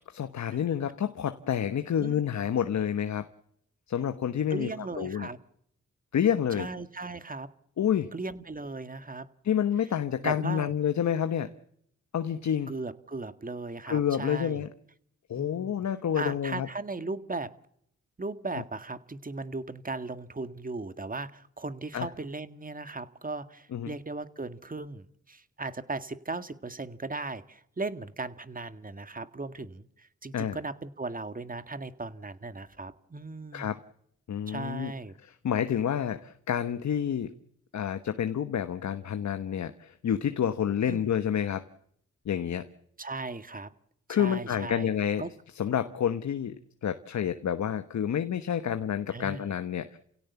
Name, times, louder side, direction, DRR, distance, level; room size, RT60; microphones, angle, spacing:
voice 1, 0.1-3.3 3.9-4.7 5.0-5.3 6.1-6.7 7.8-8.1 9.4-11.5 12.1-12.7 13.9-14.7 15.3-16.7 21.9-22.1 23.7-23.9 30.3-30.6 33.5-33.8 34.3-34.9 35.4-37.3 37.7-41.7 42.3-42.7 44.1-45.2 45.6-50.0, left 9 dB, 65° left, 9 dB, 1.2 m, -29 dB
voice 2, 4.5-5.4 6.6-7.5 8.1-9.3 10.2-10.7 12.7-14.7 15.3-15.8 16.1-17.5 18.2-33.7 34.5-35.2 40.9-41.0 43.0-43.7 44.1-44.9 45.2-45.3 49.1-49.5, right 3 dB, 30° right, 11 dB, 1.8 m, -37 dB
29.5 x 17.0 x 7.0 m, 0.72 s
cardioid pair, 50°, 30 cm